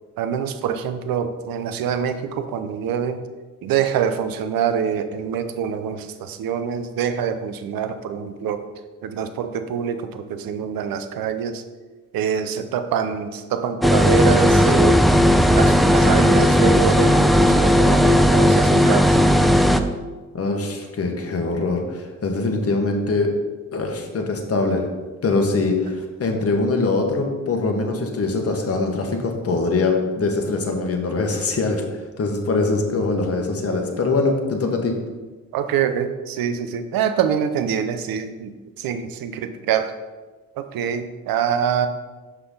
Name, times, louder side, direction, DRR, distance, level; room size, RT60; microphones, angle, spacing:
voice 1, 0.2-3.2 3.6-8.7 9.0-11.6 12.1-15.1 15.5-19.2 35.5-39.9 40.6-41.9, right 8 dB, 60° right, 10 dB, 0.7 m, -25 dB
sound 1, 13.8-19.8, equal, ahead, 0.5 m, -15 dB
voice 2, 20.3-23.3 23.7-24.8 25.2-34.9, left 3 dB, 35° left, 3 dB, 1.3 m, -23 dB
5.9 x 5.6 x 3.9 m, 1.3 s
hypercardioid pair, 50°, 39 cm